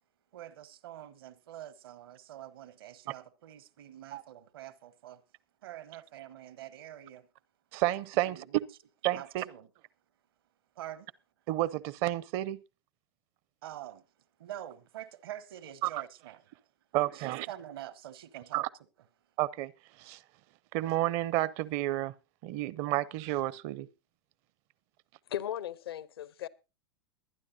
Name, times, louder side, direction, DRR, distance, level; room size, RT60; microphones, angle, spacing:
voice 1, 0.3-5.2 5.6-7.3 8.1-8.6 9.1-9.7 10.7-11.1 13.6-14.0 14.4-16.6 17.1-18.6, right 12 dB, 70° right, 1.1 m, -46 dB
voice 2, 7.7-8.4 9.0-9.4 11.5-12.6 15.8-16.0 16.9-17.5 18.5-18.7 19.4-19.7 20.0-20.2 20.7-22.1 22.4-23.9, right 15 dB, 50° right, 0.7 m, -31 dB
voice 3, 25.3-26.5, left 11 dB, 75° left, 0.8 m, -37 dB
22.0 x 9.9 x 2.7 m
hypercardioid pair, 95°, 13 cm